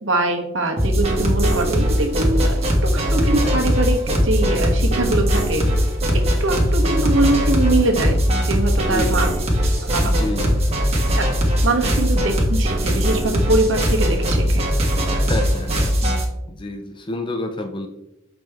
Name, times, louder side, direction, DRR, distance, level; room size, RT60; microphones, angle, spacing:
voice 1, 0.0-5.6 6.4-8.2 8.4-9.3 9.9-10.1 10.4-10.5 11.1-11.3 11.6-14.6, right 2 dB, 65° right, 3 dB, 1.3 m, -22 dB
sound 1, 0.8-16.2, equal, 30° right, 1.5 m, -20 dB
voice 2, 8.7-9.2 10.0-10.6 11.8-12.0 15.1-15.9 16.5-17.9, left 1 dB, 25° left, 4 dB, 0.5 m, -29 dB
7.4 x 5.1 x 3.5 m, 0.89 s
head